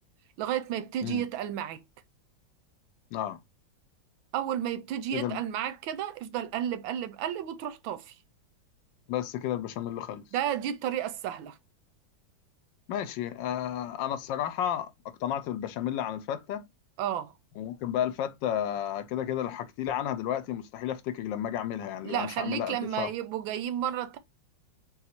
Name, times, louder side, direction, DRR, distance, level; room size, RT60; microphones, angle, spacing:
voice 1, 0.4-1.8 4.3-8.2 10.3-11.6 17.0-17.3 22.0-24.2, right 10 dB, 85° right, 1.4 m, -32 dB
voice 2, 9.1-10.2 12.9-14.9 15.2-16.7 17.6-23.1, left 10 dB, 75° left, 1.2 m, -32 dB
4.0 x 2.4 x 4.2 m
omnidirectional pair, 2.1 m